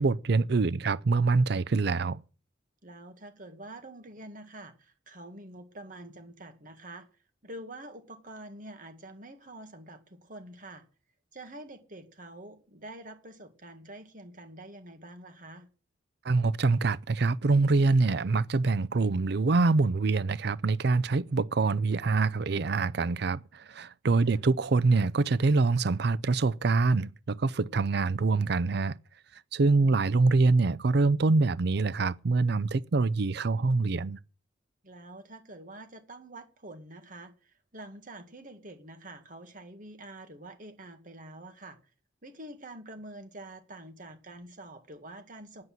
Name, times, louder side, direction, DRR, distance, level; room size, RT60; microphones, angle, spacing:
voice 1, 0.0-2.2 16.2-29.0 29.5-34.2, right 3 dB, 60° right, 0.5 m, -25 dB
voice 2, 2.8-7.1 7.4-10.9 11.3-15.7 24.2-24.4 29.8-30.1 34.8-41.8 42.2-45.6, right 1 dB, 45° right, 2.1 m, -46 dB
9.6 x 8.2 x 9.0 m
head